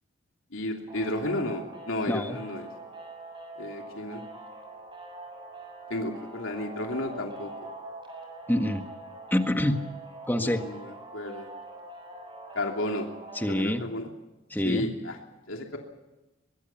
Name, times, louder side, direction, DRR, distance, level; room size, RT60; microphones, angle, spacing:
voice 1, 0.5-2.7 3.6-4.2 5.9-7.5 10.4-11.5 12.5-13.1 13.4-14.1 14.6-15.2 15.5-15.8, left 1 dB, 85° left, 2 dB, 3.0 m, -32 dB
sound 1, 0.9-13.6, right 2 dB, 25° right, 7.1 m, -44 dB
voice 2, 2.1-2.4 8.5-8.8 9.3-9.8 10.3-10.6 13.4-13.8 14.5-14.9, left 1 dB, 10° left, 6 dB, 1.6 m, -26 dB
24.0 x 22.5 x 5.9 m, 1.1 s
head